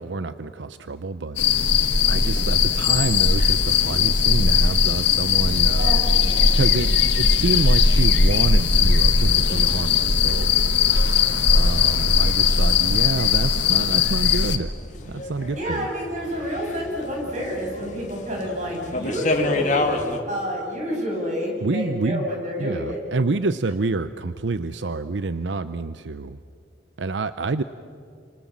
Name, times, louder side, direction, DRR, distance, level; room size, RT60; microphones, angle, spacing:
voice 1, 0.0-1.4 2.1-6.0 6.5-10.5 11.5-14.7 15.0-15.9 21.6-22.3 22.6-26.4 27.0-27.6, right 3 dB, 80° right, 12 dB, 0.7 m, -27 dB
sound 1, 1.4-14.6, left 5 dB, 75° left, 1.6 m, -19 dB
sound 2, 3.4-20.2, left 2 dB, 40° left, 2.1 m, -34 dB
voice 2, 5.8-6.6 15.5-20.0 20.3-23.0, equal, 40° right, -1 dB, 7.9 m, -29 dB
29.5 x 27.0 x 7.5 m, 2.3 s
head